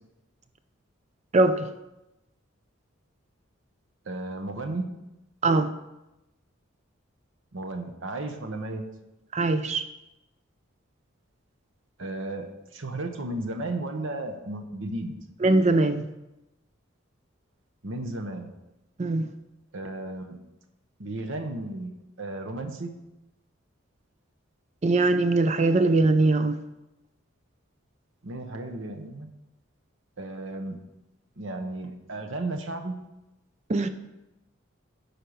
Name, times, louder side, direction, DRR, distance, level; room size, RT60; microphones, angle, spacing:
voice 1, 1.3-1.7 5.4-5.7 9.3-9.8 15.4-16.1 19.0-19.3 24.8-26.6 33.7-33.9, right 2 dB, 35° right, 10 dB, 0.4 m, -21 dB
voice 2, 4.1-4.9 7.5-8.8 12.0-15.2 17.8-18.5 19.7-20.4 21.0-21.9 22.2-22.9 28.2-29.3 30.2-30.8 31.4-33.0, right 2 dB, 65° right, 6 dB, 1.0 m, -34 dB
10.0 x 4.5 x 6.4 m, 0.96 s
head